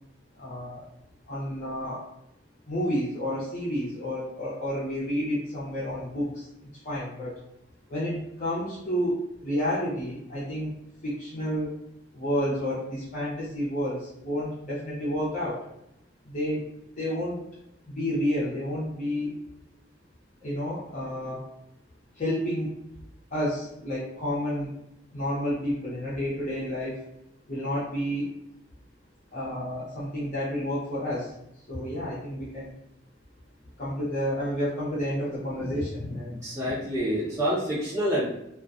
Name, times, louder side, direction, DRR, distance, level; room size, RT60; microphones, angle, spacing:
voice 1, 0.4-0.9 1.3-2.0 2.7-6.5 6.8-7.4 7.9-10.7 11.0-11.7 12.1-15.6 16.2-16.6 16.9-17.4 17.9-19.4 20.4-21.4 22.1-22.7 23.3-24.7 25.1-27.0 27.5-28.3 29.3-31.3 31.7-32.7 33.8-36.4, equal, 40° left, -9 dB, 0.6 m, -30 dB
voice 2, 36.4-38.3, equal, 15° right, -10 dB, 1.1 m, -27 dB
2.3 x 2.2 x 2.5 m, 0.82 s
head